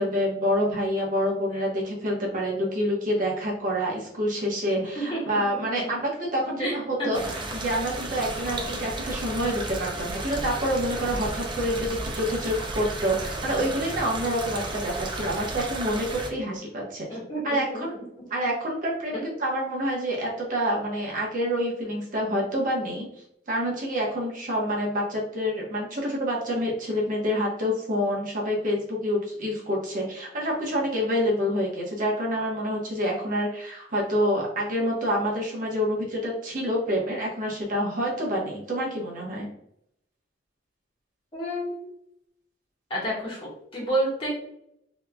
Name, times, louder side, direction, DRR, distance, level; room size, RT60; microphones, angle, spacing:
voice 1, 0.0-17.2 17.4-17.9 18.3-23.1 23.5-39.5, equal, 50° right, -3 dB, 1.0 m, -27 dB
sound 1, 7.1-16.3, right 2 dB, 25° right, 0.5 m, -33 dB
voice 2, 17.1-18.0 19.1-19.2 41.3-41.9 42.9-44.3, right 1 dB, 30° left, -5 dB, 1.4 m, -30 dB
3.6 x 3.1 x 2.2 m, 0.74 s
head